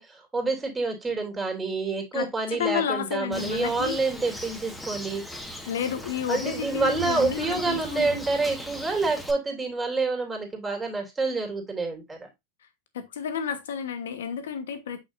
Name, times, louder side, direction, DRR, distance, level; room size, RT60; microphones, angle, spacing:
voice 1, 0.0-5.2 6.3-12.3, right 3 dB, 15° right, 2.7 m, -28 dB
voice 2, 2.1-4.0 5.6-8.2 12.9-15.0, left 7 dB, 85° left, 1.2 m, -31 dB
Bird, 3.3-9.3, equal, 5° left, 1.6 m, -39 dB
6.4 x 5.7 x 2.6 m
hypercardioid pair, 105°, 0 cm